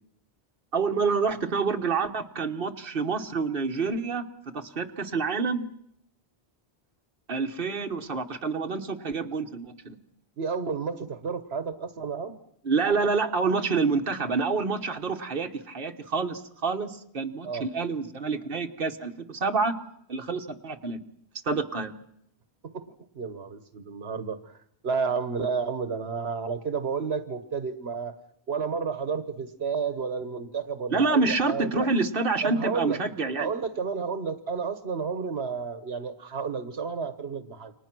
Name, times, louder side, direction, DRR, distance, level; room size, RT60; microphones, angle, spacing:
voice 1, 0.7-4.2 4.5-5.7 7.3-10.0 12.6-19.7 20.1-21.0 21.4-21.9 30.9-33.5, right 4 dB, 60° right, 4 dB, 1.6 m, -27 dB
voice 2, 10.4-12.4 17.4-17.7 22.6-22.8 23.1-24.5 24.8-28.1 28.5-31.9 32.4-33.0 33.4-37.7, right 5 dB, 85° right, 10 dB, 1.5 m, -31 dB
28.5 x 24.5 x 6.1 m, 0.72 s
omnidirectional pair, 1.0 m